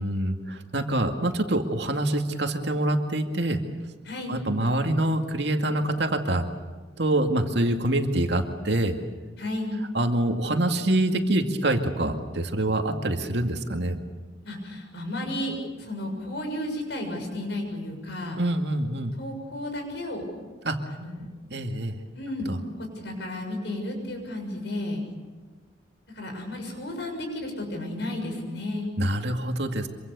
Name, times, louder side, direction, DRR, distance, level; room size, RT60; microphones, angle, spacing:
voice 1, 0.0-3.6 4.3-6.5 7.0-8.9 9.9-14.0 18.4-19.1 20.6-20.8 21.5-22.0 22.5-22.6 29.0-29.9, right 1 dB, 65° right, 4 dB, 2.2 m, -25 dB
voice 2, 9.4-9.7 14.4-18.4 19.1-20.2 20.9-21.3 22.1-22.5 22.8-25.0 26.1-28.9, left 1 dB, 65° left, 3 dB, 6.8 m, -33 dB
26.0 x 24.5 x 7.0 m, 1.3 s
head